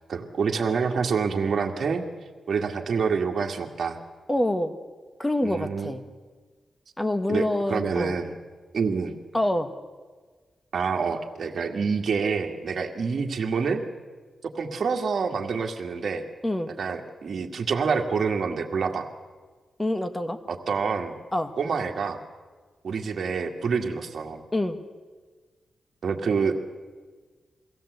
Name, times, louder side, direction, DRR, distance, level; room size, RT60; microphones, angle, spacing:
voice 1, 0.1-2.1 2.5-4.0 5.4-5.9 7.3-8.3 8.7-9.1 10.7-13.8 14.5-16.2 16.8-19.1 20.5-21.1 21.6-22.2 22.8-24.4 26.0-26.6, right 5 dB, 60° right, 3 dB, 2.0 m, -27 dB
voice 2, 4.3-4.8 5.2-6.0 7.0-8.2 9.3-9.7 16.4-16.7 19.8-20.4 21.3-21.5 24.5-24.8, left 1 dB, 15° left, 10 dB, 1.4 m, -26 dB
23.0 x 16.5 x 8.1 m, 1.4 s
wide cardioid pair, 110°, 0 cm